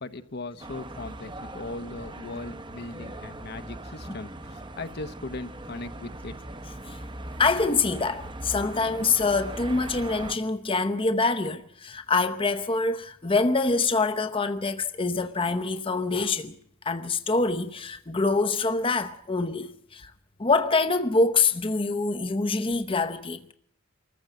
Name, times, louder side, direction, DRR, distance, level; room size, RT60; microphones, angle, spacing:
voice 1, 0.0-6.3, left 2 dB, 50° left, 0.9 m, -38 dB
sound 1, 0.6-10.4, right 1 dB, 20° right, 0.9 m, -40 dB
voice 2, 7.4-16.6 16.8-20.1 20.4-23.5, left 3 dB, 25° left, 0.8 m, -25 dB
24.5 x 14.5 x 7.6 m
head